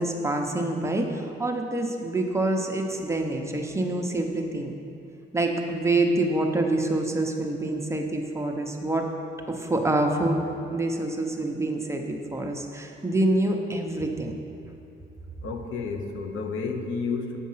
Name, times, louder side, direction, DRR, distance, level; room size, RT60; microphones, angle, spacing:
voice 1, 0.0-4.7 5.3-9.1 9.5-10.4 10.7-14.3, right 2 dB, 15° right, 2 dB, 0.9 m, -26 dB
voice 2, 15.4-17.4, left 4 dB, 85° left, 4 dB, 0.8 m, -31 dB
8.5 x 5.3 x 5.6 m, 2.7 s
cardioid pair, 90°, 20 cm